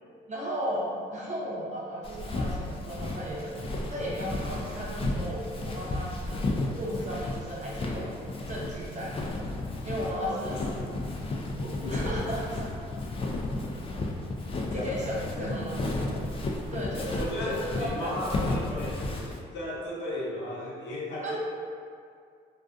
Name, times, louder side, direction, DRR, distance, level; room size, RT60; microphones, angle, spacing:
voice 1, 0.3-3.6 3.9-6.5 6.8-8.1 8.5-9.3 9.8-10.7 11.9-12.4 14.7-16.1 16.7-18.1 21.2-21.4, equal, 40° right, -5 dB, 0.8 m, -35 dB
Walk footsteps, 2.0-19.4, left 2 dB, 30° left, 0.4 m, -33 dB
voice 2, 10.0-11.0 11.6-12.8 14.7-15.1 15.4-15.6 17.2-21.4, left 1 dB, 75° left, -5 dB, 0.7 m, -36 dB
2.3 x 2.3 x 2.4 m, 2.2 s
supercardioid pair, 60°, 19 cm